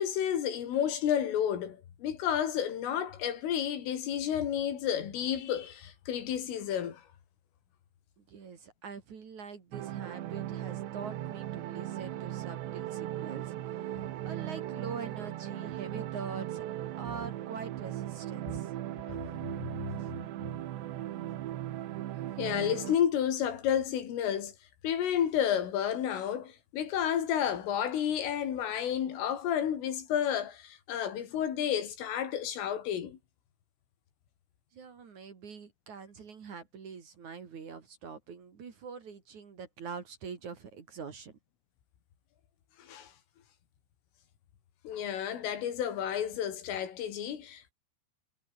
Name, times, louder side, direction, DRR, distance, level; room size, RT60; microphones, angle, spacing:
voice 1, 0.0-7.0 19.1-19.2 19.8-19.9 22.4-24.5 24.8-33.2 42.8-43.1 44.9-47.7, left 9 dB, 80° left, 5.8 m, -31 dB
voice 2, 8.2-14.0 14.2-16.7 17.0-18.7 20.0-20.1 34.7-41.4, right 5 dB, 45° right, 3.4 m, -44 dB
sound 1, 9.7-23.0, right 13 dB, 70° right, 3.5 m, -38 dB
omnidirectional pair, 5.7 m